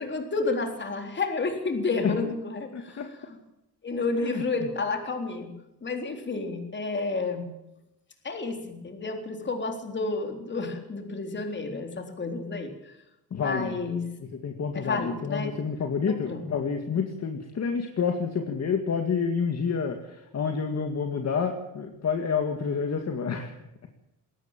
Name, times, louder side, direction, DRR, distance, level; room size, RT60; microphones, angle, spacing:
voice 1, 0.0-3.0 3.3-3.4 3.8-5.5 5.8-7.5 8.2-12.9 13.3-14.0 14.7-15.5 16.3-16.6, left 3 dB, 30° left, 4 dB, 3.8 m, -30 dB
voice 2, 2.7-3.1 4.2-4.4 13.3-13.8 14.4-23.5, left 6 dB, 45° left, 4 dB, 2.1 m, -28 dB
21.0 x 18.0 x 7.5 m, 0.90 s
wide cardioid pair, 160°, 35 cm